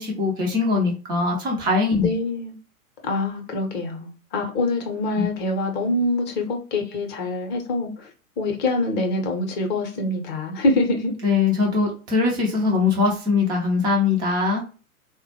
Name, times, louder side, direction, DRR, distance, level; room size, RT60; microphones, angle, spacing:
voice 1, 0.0-2.1 5.2-5.3 11.2-14.6, left 4 dB, 10° right, 0.4 m, -21 dB
voice 2, 2.0-2.5 3.0-8.1 8.4-11.1, left 2 dB, 25° left, 0.7 m, -25 dB
3.8 x 2.2 x 2.8 m
figure-of-eight pair, 100°, 44 cm